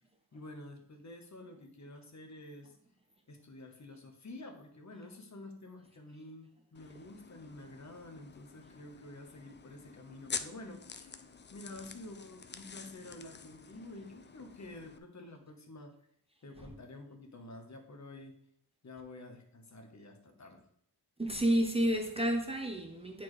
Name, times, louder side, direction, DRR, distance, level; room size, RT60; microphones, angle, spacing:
voice 1, 0.3-2.7 3.3-11.1 11.5-15.9 16.4-18.3 18.8-20.6, left 2 dB, 45° left, 1.1 m, -49 dB
sound 1, 6.7-15.0, left 5 dB, 30° left, 0.4 m, -47 dB
voice 2, 21.2-23.2, right 1 dB, 15° right, 0.7 m, -30 dB
9.2 x 4.3 x 3.1 m
wide cardioid pair, 120°, 39 cm